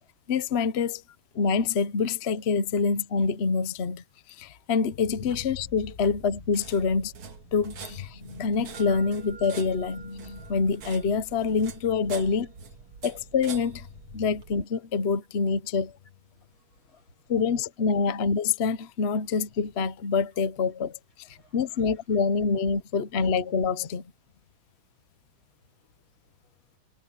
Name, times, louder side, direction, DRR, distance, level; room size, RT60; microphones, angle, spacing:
voice 1, 0.3-1.0 1.3-7.1 7.5-12.5 13.0-13.9 14.1-15.9 17.3-24.0, left 5 dB, 45° left, 0.8 m, -26 dB
sound 1, 5.3-14.6, right 6 dB, 85° right, 2.7 m, -45 dB
sound 2, 8.7-16.6, right 5 dB, 25° right, 5.9 m, -54 dB
voice 2, 16.3-17.3 21.3-21.8 23.2-23.3 25.8-26.5, left 1 dB, 75° left, 7.7 m, -61 dB
omnidirectional pair, 2.3 m